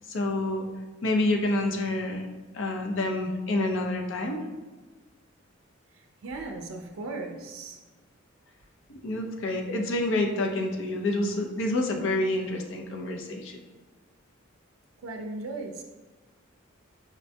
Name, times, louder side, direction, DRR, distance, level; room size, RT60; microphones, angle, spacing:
voice 1, 0.1-0.7 1.0-2.2 2.5-4.4 8.9-13.6, left 2 dB, 65° left, 3 dB, 0.5 m, -28 dB
voice 2, 6.2-7.8 15.0-15.8, right 2 dB, 90° right, 2 dB, 0.4 m, -37 dB
5.2 x 2.2 x 2.6 m, 1.3 s
head